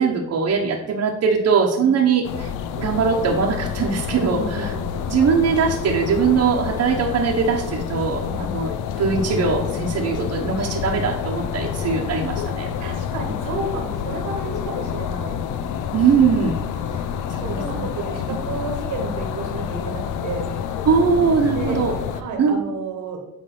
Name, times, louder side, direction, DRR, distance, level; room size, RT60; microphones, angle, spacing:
voice 1, 0.0-2.5 2.8-4.7 5.1-8.7 9.0-12.7 15.9-16.6 17.4-17.8 20.8-21.9 22.4-22.6, right 5 dB, 60° right, -1 dB, 1.1 m, -21 dB
sound 1, 2.2-22.2, left 8 dB, 90° left, 0.6 m, -28 dB
voice 2, 4.3-5.1 8.3-8.5 12.8-15.4 17.1-20.5 21.5-21.8 22.1-23.2, right 3 dB, 85° right, 2 dB, 1.5 m, -31 dB
8.2 x 3.5 x 5.9 m, 0.87 s
cardioid pair, 90°, 30 cm